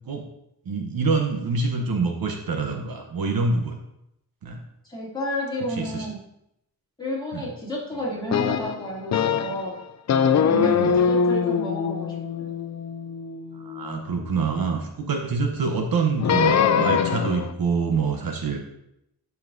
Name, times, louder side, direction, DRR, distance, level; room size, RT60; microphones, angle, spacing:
voice 1, 0.6-3.8 4.4-4.6 5.8-6.1 7.3-7.5 10.5-11.0 13.5-18.6, right 4 dB, 65° right, 3 dB, 1.0 m, -26 dB
voice 2, 4.9-6.2 7.0-9.7 10.4-10.7 11.0-12.5, equal, 10° left, -6 dB, 2.8 m, -31 dB
sound 1, 8.3-9.7 10.1-14.4 16.2-17.5, left 7 dB, 45° left, 0.4 m, -23 dB
12.0 x 5.6 x 2.7 m, 0.80 s
wide cardioid pair, 135°, 39 cm